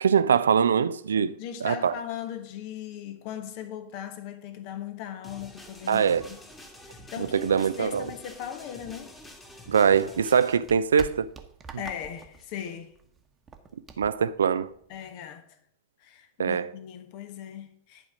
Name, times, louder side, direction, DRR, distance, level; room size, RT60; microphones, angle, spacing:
voice 1, 0.0-1.3 1.6-1.9 5.9-6.3 7.2-8.1 9.7-11.3 14.0-14.7 16.4-16.7, right 7 dB, 70° right, 0.4 m, -23 dB
voice 2, 1.4-6.4 6.8-9.2 11.8-12.9 14.9-15.6 16.0-18.1, left 10 dB, 45° left, 1.2 m, -38 dB
sound 1, 5.2-10.6, left 1 dB, 10° left, 1.9 m, -47 dB
sound 2, 9.1-15.1, right 7 dB, 20° right, 1.2 m, -47 dB
11.0 x 5.0 x 6.2 m
figure-of-eight pair, 90°, 0 cm